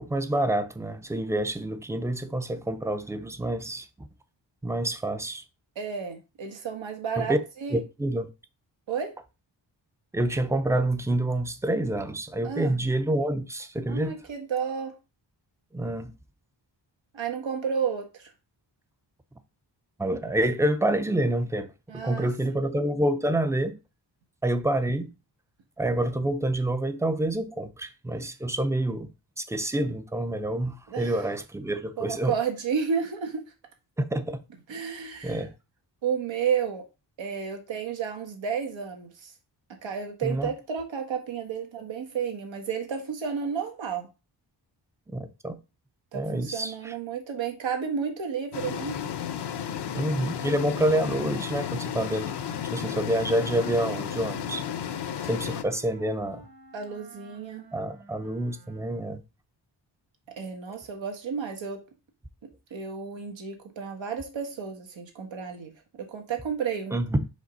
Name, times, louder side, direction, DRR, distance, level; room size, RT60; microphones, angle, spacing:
voice 1, 0.0-4.1 4.6-5.4 7.2-7.4 7.7-8.3 10.1-14.2 15.7-16.1 20.0-23.8 24.4-25.1 25.8-29.1 29.4-32.4 34.0-34.4 35.2-35.5 40.2-40.5 45.1-45.6 46.1-46.9 49.9-52.3 52.7-54.6 55.2-56.5 57.7-59.2 66.9-67.3, right 1 dB, 5° right, 0.4 m, -27 dB
voice 2, 5.7-7.8 8.9-9.1 12.4-12.8 13.9-14.9 17.1-18.3 21.9-22.6 30.9-31.1 32.0-33.5 34.7-35.4 36.0-36.8 37.2-39.3 39.8-44.1 46.1-49.0 56.7-57.6 60.4-61.8 62.7-67.0, right 6 dB, 85° right, 1.6 m, -32 dB
sound 1, 48.5-55.6, left 9 dB, 65° left, 0.7 m, -33 dB
sound 2, 51.9-59.2, right 2 dB, 50° right, 1.6 m, -51 dB
5.2 x 3.6 x 5.3 m
wide cardioid pair, 160°, 44 cm